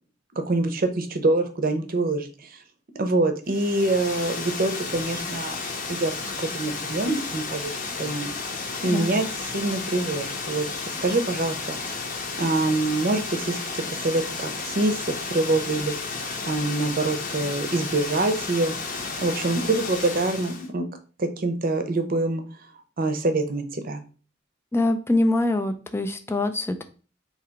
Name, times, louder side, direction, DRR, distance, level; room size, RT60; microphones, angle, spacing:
voice 1, 0.3-2.6 2.9-6.1 6.4-7.7 8.0-8.3 8.8-10.6 11.0-11.6 12.4-16.2 16.4-18.7 19.2-20.9 21.2-22.4 23.0-24.0, right 2 dB, 50° right, 7 dB, 0.7 m, -25 dB
Water, 3.5-20.7, left 4 dB, 45° left, 0.7 m, -32 dB
voice 2, 24.7-26.8, left 2 dB, 15° left, 7 dB, 0.4 m, -24 dB
4.0 x 2.8 x 4.4 m, 0.37 s
head